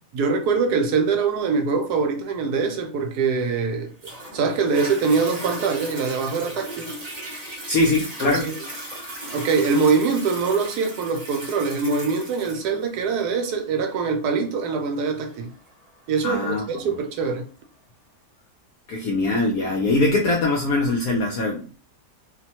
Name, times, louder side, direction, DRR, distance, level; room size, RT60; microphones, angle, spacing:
voice 1, 0.1-3.9 4.3-6.9 8.2-8.6 9.3-15.5 16.1-17.5, right 5 dB, 75° right, 1.1 m, -23 dB
Toilet flush, 4.0-17.0 17.6-17.7, right 1 dB, 35° right, 0.7 m, -37 dB
voice 2, 7.7-8.5 16.2-16.9 18.9-21.7, left 2 dB, 70° left, 0.9 m, -22 dB
2.8 x 2.1 x 2.8 m
omnidirectional pair, 1.8 m